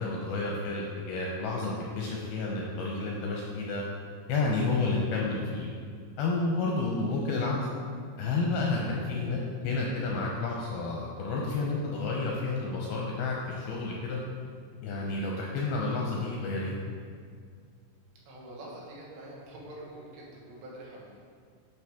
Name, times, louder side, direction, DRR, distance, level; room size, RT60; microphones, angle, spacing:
voice 1, 0.0-3.8 4.3-5.7 6.2-7.6 8.2-14.2 14.8-16.7, left 3 dB, 75° left, -2 dB, 2.3 m, -30 dB
voice 2, 18.3-21.2, right 1 dB, 75° right, -4 dB, 3.6 m, -45 dB
9.7 x 6.0 x 3.6 m, 2.1 s
omnidirectional pair, 5.1 m